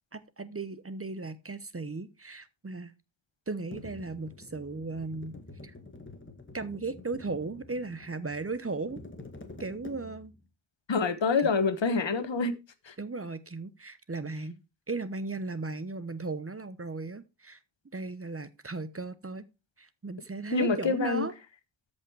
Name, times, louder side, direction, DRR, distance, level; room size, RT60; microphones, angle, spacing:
voice 1, 0.1-2.9 3.5-5.4 5.6-5.7 6.5-9.0 9.6-10.3 11.4-11.5 13.0-14.6 14.9-17.6 17.9-19.5 19.8-21.3, right 3 dB, 30° right, 0.9 m, -36 dB
sound 1, 3.7-10.4, left 2 dB, 25° left, 2.0 m, -48 dB
voice 2, 10.9-12.6 12.9-13.0 20.5-21.3, left 4 dB, 65° left, 1.4 m, -26 dB
13.5 x 5.4 x 4.7 m
wide cardioid pair, 80°, 47 cm